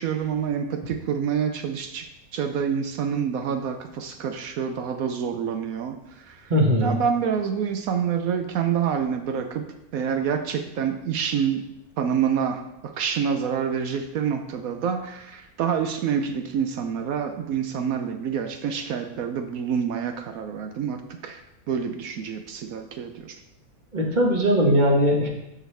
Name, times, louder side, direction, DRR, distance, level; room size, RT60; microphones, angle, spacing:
voice 1, 0.0-6.5 6.8-11.6 12.0-21.4 21.7-23.4, right 7 dB, 75° right, 7 dB, 1.0 m, -27 dB
voice 2, 6.5-7.0 23.9-25.3, equal, 30° right, 0 dB, 1.4 m, -20 dB
13.5 x 4.8 x 3.4 m, 0.88 s
omnidirectional pair, 1.6 m